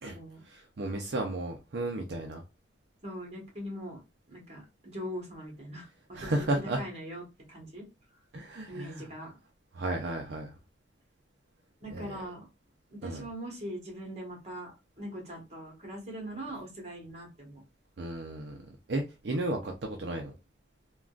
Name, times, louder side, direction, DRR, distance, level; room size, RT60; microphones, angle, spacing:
voice 1, 0.4-2.4 6.1-6.8 8.3-9.1 9.7-10.5 11.9-12.3 13.0-13.3 18.0-18.6 18.9-20.3, right 2 dB, 65° right, 0.5 m, -33 dB
voice 2, 3.0-4.0 4.3-6.3 6.8-7.2 7.5-7.9 8.7-9.3 11.8-12.5 12.9-17.6, equal, 35° right, 1.2 m, -41 dB
3.6 x 2.3 x 2.4 m
head